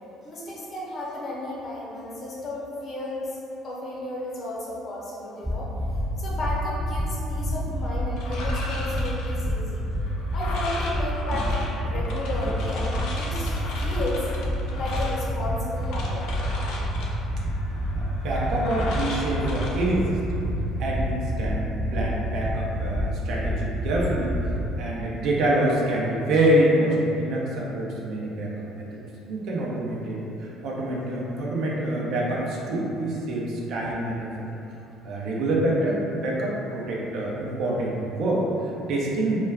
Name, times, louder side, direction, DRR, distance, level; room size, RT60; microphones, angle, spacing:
voice 1, 0.2-3.4 3.6-5.7 6.2-9.8 10.3-13.5 13.8-14.3 14.7-16.3, left 1 dB, 50° left, -6 dB, 0.8 m, -33 dB
sound 1, 5.4-5.5 5.8-6.0 6.3-6.5 6.8-7.0 7.3-7.5 7.8-8.0 8.3-8.5 8.8-9.0 9.3-9.5 9.8-10.0 10.3-10.5 10.8-11.0 11.3-11.5 11.8-12.0 12.3-12.5 12.8-13.0 13.3-13.5 13.8-14.0 14.3-14.5 14.8-15.0 15.3-15.5 15.8-16.0 16.3-16.5 16.8-17.0 17.3-17.5 17.8-18.0 18.3-18.5 18.8-19.0 19.3-19.5 19.8-20.0 20.3-20.5 20.8-21.0 21.3-21.5 21.8-22.0 22.3-22.5 22.8-23.0 23.3-23.5 23.8-24.0 24.3-24.5, right 1 dB, 15° right, 0.5 m, -28 dB
sound 2, 8.2-20.5, left 2 dB, 70° left, 0.4 m, -37 dB
voice 2, 17.7-20.1 20.8-24.3 24.8-28.5 28.8-28.9 29.3-34.3 35.0-39.4, right 1 dB, 65° right, -4 dB, 0.5 m, -26 dB
2.3 x 2.1 x 3.4 m, 2.9 s
hypercardioid pair, 65°, 0 cm